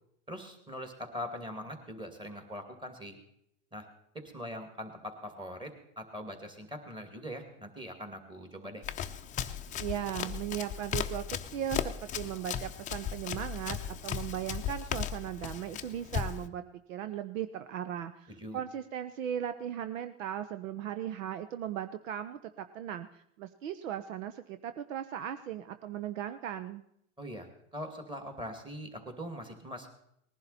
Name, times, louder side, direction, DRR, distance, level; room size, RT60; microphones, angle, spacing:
voice 1, 0.3-3.2 3.7-3.9 4.1-8.8 18.3-18.6 27.2-27.5 27.7-29.9, equal, 10° right, 5 dB, 2.4 m, -42 dB
Run, 8.8-16.5, left 9 dB, 20° left, 0.6 m, -36 dB
voice 2, 9.8-16.6 16.9-26.8, right 10 dB, 80° right, 10 dB, 0.9 m, -37 dB
19.5 x 11.5 x 4.2 m, 0.72 s
supercardioid pair, 130°, 39 cm